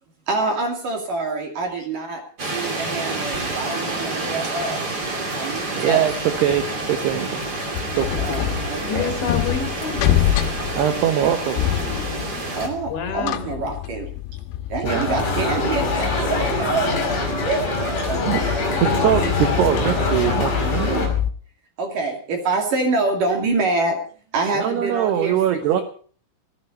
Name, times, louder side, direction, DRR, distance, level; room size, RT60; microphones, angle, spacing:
voice 1, 0.3-2.2 2.5-4.8 5.3-6.1 8.2-9.1 12.5-14.1 14.7-16.9 17.4-18.2 18.5-19.1 21.8-24.0 24.3-25.8, right 3 dB, 50° right, 3 dB, 3.6 m, -26 dB
sound 1, 2.4-12.7, right 2 dB, 25° right, 2.3 m, -29 dB
voice 2, 5.6-6.1 6.4-7.5 7.9-8.2 10.7-11.6 12.0-12.7 14.8-15.1 18.2-21.1 24.5-25.8, right 10 dB, 75° right, 8 dB, 2.5 m, -23 dB
sound 2, 6.2-21.3, left 11 dB, 85° left, 3.9 m, -27 dB
voice 3, 8.8-10.1 12.9-13.7, left 5 dB, 65° left, 5 dB, 4.6 m, -28 dB
sound 3, 14.8-21.1, left 2 dB, 40° left, 6.4 m, -24 dB
15.5 x 15.0 x 5.4 m, 0.44 s
omnidirectional pair, 5.9 m